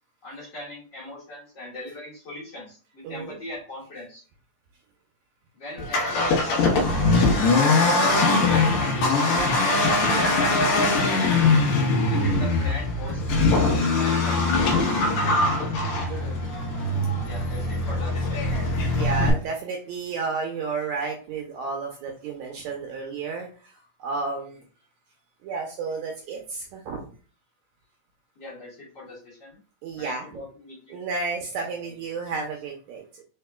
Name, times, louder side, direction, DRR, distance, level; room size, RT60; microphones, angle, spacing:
voice 1, 0.2-4.2 5.5-7.5 8.0-9.5 10.1-11.2 11.9-13.6 14.0-15.6 17.2-18.5 28.4-29.6 30.0-31.0 31.6-31.7, left 2 dB, 40° left, -7 dB, 2.1 m, -40 dB
voice 2, 3.0-3.4 10.0-10.3 11.4-11.6 16.1-16.5 17.0-17.1 18.8-24.6 25.4-27.1 29.8-30.4 30.9-33.2, right 4 dB, 75° right, 2 dB, 1.8 m, -32 dB
Accelerating revving vroom, 5.8-19.3, left 3 dB, 70° left, 2.2 m, -22 dB
4.6 x 4.2 x 2.2 m, 0.39 s
omnidirectional pair, 3.7 m